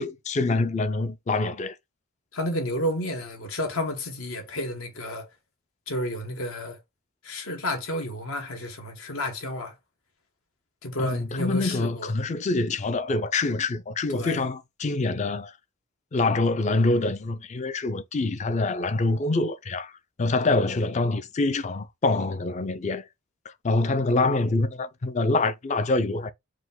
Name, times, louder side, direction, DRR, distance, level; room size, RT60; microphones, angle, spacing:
voice 1, 0.0-1.7 11.0-15.5 16.1-19.9 20.2-23.0 23.6-26.3, left 3 dB, 30° left, 0.4 m, -25 dB
voice 2, 2.3-5.3 5.9-6.8 7.2-9.7 10.8-12.1 14.1-14.4, left 1 dB, 75° left, 1.2 m, -31 dB
4.8 x 2.2 x 3.7 m
head